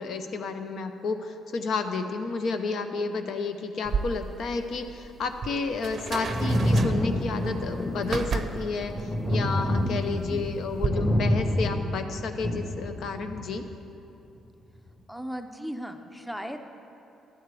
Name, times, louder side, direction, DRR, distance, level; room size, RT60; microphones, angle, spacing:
voice 1, 0.0-13.6, left 4 dB, 70° left, 7 dB, 0.6 m, -31 dB
sound 1, 3.8-10.9, right 5 dB, 45° right, 0.5 m, -34 dB
Thunder, 6.3-13.6 14.7-14.8, equal, 20° left, 1.9 m, -27 dB
voice 2, 10.1-10.5 15.1-16.6, equal, 5° left, 7 dB, 0.6 m, -37 dB
11.5 x 4.5 x 8.3 m, 2.7 s
cardioid pair, 90°, 0 cm